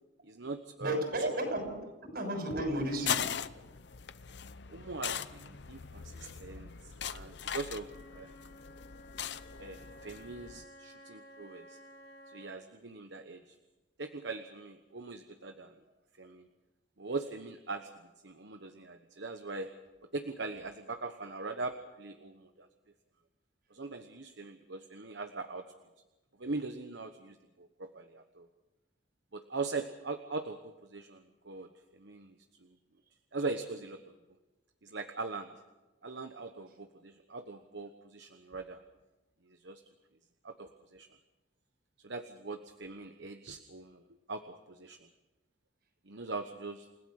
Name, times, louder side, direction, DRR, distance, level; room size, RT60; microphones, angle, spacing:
voice 1, 0.2-1.3 4.7-8.4 9.6-11.8 12.3-13.5 14.0-15.8 16.2-16.5 17.0-17.9 18.2-19.7 20.1-22.7 23.7-25.6 26.4-28.5 29.3-32.7 33.3-34.1 34.8-35.5 36.0-38.8 39.4-39.8 40.4-41.1 42.0-44.0 44.3-45.1 46.1-46.9, right 3 dB, 75° right, 7 dB, 1.2 m, -41 dB
voice 2, 0.8-1.8 2.0-3.3, right 1 dB, 55° right, 4 dB, 6.2 m, -33 dB
sound 1, 2.7-10.6, left 8 dB, 65° left, 0.8 m, -40 dB
Wind instrument woodwind instrument, 7.7-12.6, left 1 dB, 85° left, 5.3 m, -54 dB
29.0 x 16.5 x 6.6 m, 1.1 s
head